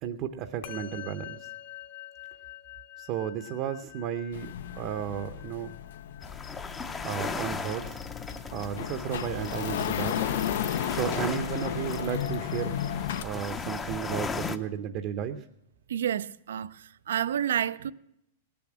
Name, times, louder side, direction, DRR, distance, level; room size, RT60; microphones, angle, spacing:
voice 1, 0.0-1.5 3.0-5.7 7.0-8.0 8.5-10.2 10.9-12.8 13.2-15.4, right 9 dB, 35° right, 0.7 m, -33 dB
Musical instrument, 0.6-10.2, left 13 dB, 60° left, 1.3 m, -47 dB
sound 1, 4.3-13.2, left 10 dB, 75° left, 0.6 m, -34 dB
sound 2, 6.2-14.6, left 4 dB, 15° left, 0.6 m, -37 dB
voice 2, 15.9-17.9, right 9 dB, 85° right, 0.5 m, -30 dB
18.5 x 7.0 x 7.4 m
supercardioid pair, 155°, 0 cm